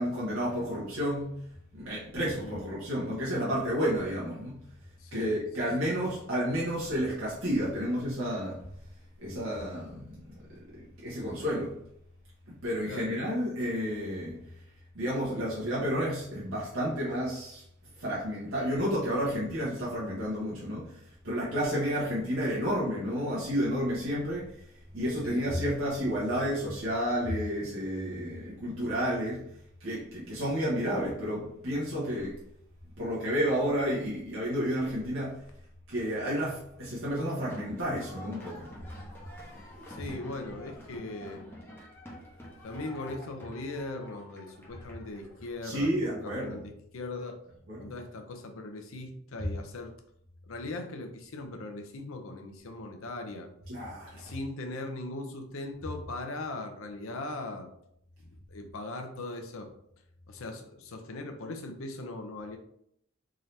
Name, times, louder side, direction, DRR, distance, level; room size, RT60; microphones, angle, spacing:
voice 1, 0.0-1.4 1.7-4.6 5.1-8.7 9.2-10.2 10.7-11.8 12.6-14.4 14.9-17.6 18.0-24.7 24.9-29.5 29.8-32.4 33.0-35.4 35.9-38.7 39.4-39.9 45.6-46.6 47.7-47.8 53.7-54.2, equal, 70° right, -7 dB, 1.1 m, -31 dB
voice 2, 5.0-5.4 6.0-6.1 12.9-13.2 25.2-25.5 39.9-41.4 42.6-47.4 47.8-49.9 50.5-53.5 54.1-57.7 58.5-59.7 60.3-62.6, left 2 dB, 75° left, 5 dB, 0.6 m, -39 dB
sound 1, 37.1-46.6, equal, 10° left, 0.9 m, -49 dB
3.7 x 2.7 x 3.2 m, 0.71 s
head